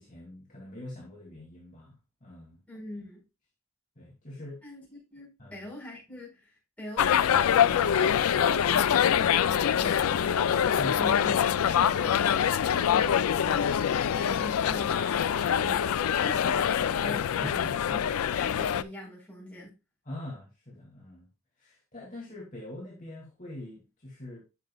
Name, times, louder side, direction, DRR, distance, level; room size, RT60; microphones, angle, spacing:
voice 1, 0.0-1.9 2.2-2.6 4.0-4.6 5.4-5.7 10.8-11.1 17.4-17.8 20.0-21.3 21.6-24.4, left 1 dB, 35° left, -4 dB, 2.4 m, -43 dB
voice 2, 2.7-3.2 4.6-17.6 17.9-19.7, left 1 dB, 5° left, -5 dB, 4.7 m, -42 dB
sound 1, 7.0-18.8, left 8 dB, 85° left, 0.4 m, -25 dB
10.5 x 6.6 x 2.3 m, 0.27 s
head